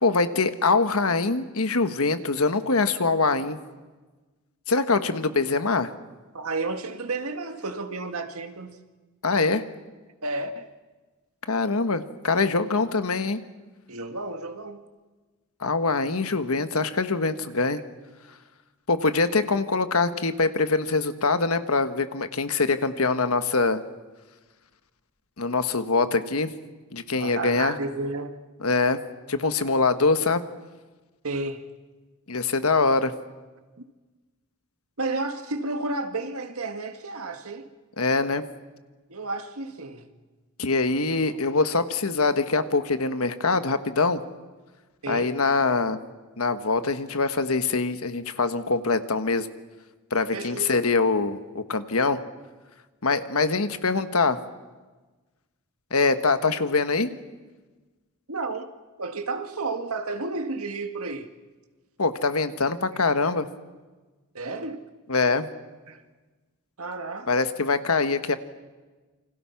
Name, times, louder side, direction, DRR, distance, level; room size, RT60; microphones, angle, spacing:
voice 1, 0.0-3.6 4.7-5.9 9.2-9.6 11.5-13.4 15.6-17.8 18.9-23.8 25.4-26.5 26.9-27.7 28.6-29.0 29.3-30.4 32.3-33.1 38.0-38.5 40.6-44.2 45.1-46.0 46.4-49.5 50.1-52.2 53.0-54.4 55.9-57.1 62.0-63.5 65.1-65.5 67.3-68.4, left 3 dB, 70° left, 1.4 m, -23 dB
voice 2, 6.3-8.8 10.2-10.7 13.9-14.8 27.2-28.4 31.2-31.7 35.0-37.7 39.1-40.1 45.0-45.3 50.3-50.7 58.3-58.7 59.0-61.3 64.3-64.8 65.9-66.0 66.8-67.3 67.9-68.0, right 3 dB, 70° right, 2.0 m, -32 dB
28.5 x 26.0 x 5.9 m
head